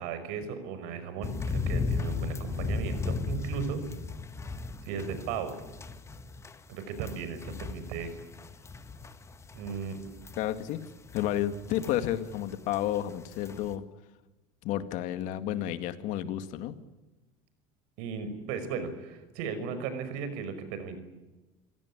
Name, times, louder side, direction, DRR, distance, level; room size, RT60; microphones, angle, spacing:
voice 1, 0.0-3.8 4.8-5.6 6.7-8.1 9.5-10.0 18.0-21.0, right 6 dB, 75° right, 11 dB, 5.6 m, -36 dB
sound 1, 1.2-12.4 12.7-13.7, left 4 dB, 20° left, 1.8 m, -36 dB
voice 2, 10.4-10.9 11.1-13.8 14.6-16.8, left 12 dB, 65° left, 10 dB, 2.1 m, -31 dB
28.0 x 17.5 x 9.9 m, 1.1 s
supercardioid pair, 125°, 14 cm